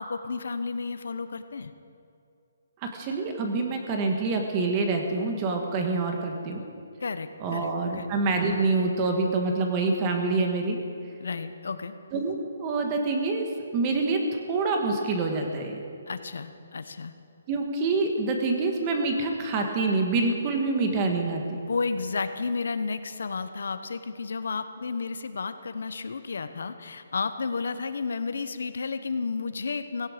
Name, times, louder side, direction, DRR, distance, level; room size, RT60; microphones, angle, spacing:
voice 1, 0.0-1.7 7.0-8.1 11.2-11.9 16.1-17.1 21.7-30.1, left 4 dB, 70° left, 11 dB, 0.9 m, -32 dB
voice 2, 2.9-6.6 7.4-10.8 12.1-13.4 13.7-14.2 14.5-15.8 17.5-21.6, right 3 dB, 20° right, 3 dB, 1.4 m, -26 dB
17.0 x 16.0 x 5.1 m, 2.6 s
hypercardioid pair, 175°, 0 cm